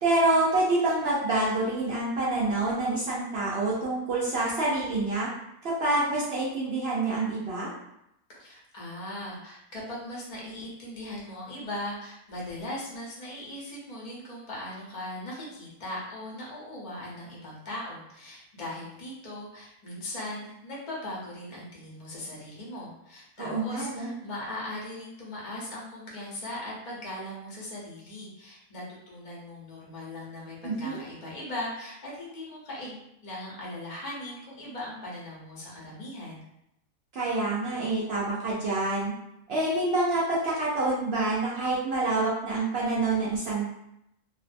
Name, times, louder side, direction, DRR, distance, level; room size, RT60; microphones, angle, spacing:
voice 1, 0.0-5.3 5.6-7.7 23.4-24.1 30.6-31.0 37.1-39.1 39.5-43.7, right 2 dB, 65° right, -6 dB, 0.6 m, -27 dB
voice 2, 8.4-36.4, left 1 dB, 40° left, -5 dB, 0.6 m, -39 dB
2.5 x 2.1 x 2.5 m, 0.82 s
omnidirectional pair, 1.6 m